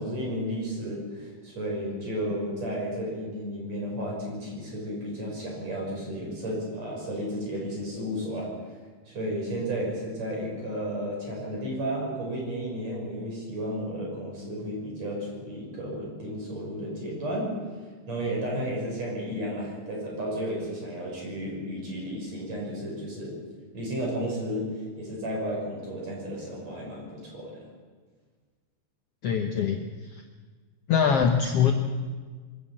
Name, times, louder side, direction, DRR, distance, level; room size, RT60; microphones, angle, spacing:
voice 1, 0.0-8.8 9.1-17.6 18.1-23.4 23.7-27.7, equal, 45° right, -2 dB, 7.3 m, -33 dB
voice 2, 29.2-29.9 30.1-30.2 30.9-31.7, left 7 dB, 85° left, 4 dB, 1.3 m, -23 dB
23.5 x 12.5 x 8.7 m, 1.5 s
omnidirectional pair, 4.3 m